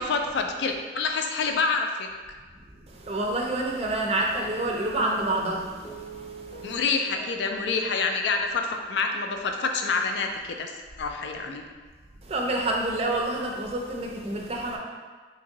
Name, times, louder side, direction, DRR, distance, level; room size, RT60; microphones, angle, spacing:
voice 1, 0.0-2.1 6.6-10.7 11.0-11.6, left 4 dB, 70° left, 4 dB, 0.3 m, -27 dB
voice 2, 2.9-6.8 12.2-14.8, right 2 dB, 35° right, 0 dB, 0.4 m, -28 dB
Guitar, 4.4-11.0, right 3 dB, 25° left, 0.7 m, -47 dB
2.9 x 2.6 x 3.8 m, 1.4 s
head